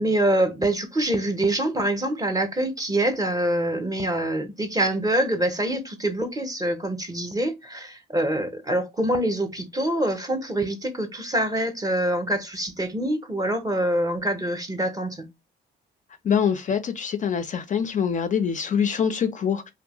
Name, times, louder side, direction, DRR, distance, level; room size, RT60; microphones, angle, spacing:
voice 1, 0.0-15.3, right 1 dB, 20° right, 0.6 m, -25 dB
voice 2, 16.2-19.7, left 7 dB, 40° left, 0.4 m, -24 dB
2.6 x 2.1 x 2.9 m
cardioid pair, 90°, 20 cm